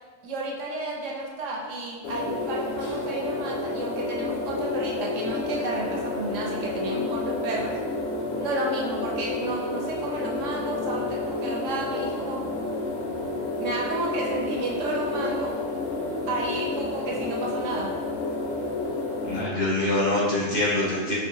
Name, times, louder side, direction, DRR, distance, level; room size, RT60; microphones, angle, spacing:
voice 1, 0.2-7.8 8.4-12.4 13.6-15.6 16.3-17.9, right 2 dB, 70° right, -2 dB, 0.9 m, -32 dB
sound 1, 2.0-19.4, left 2 dB, 90° left, 1.3 m, -30 dB
voice 2, 19.2-21.1, left 2 dB, 50° left, -6 dB, 0.7 m, -24 dB
4.6 x 3.0 x 2.7 m, 1.5 s
omnidirectional pair, 1.4 m